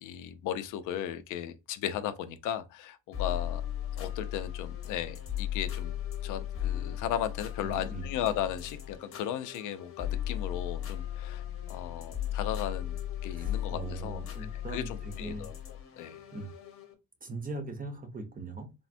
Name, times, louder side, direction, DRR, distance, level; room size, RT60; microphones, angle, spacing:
voice 1, 0.0-3.6 4.0-5.9 6.2-14.2 14.7-16.2, left 10 dB, 85° left, 0.5 m, -36 dB
sound 1, 3.1-16.9, left 11 dB, 45° left, 0.8 m, -36 dB
voice 2, 7.6-8.0 13.3-15.5 16.3-16.5 17.2-18.7, right 3 dB, 30° right, 0.8 m, -40 dB
3.4 x 2.1 x 2.5 m
cardioid pair, 90°, 30 cm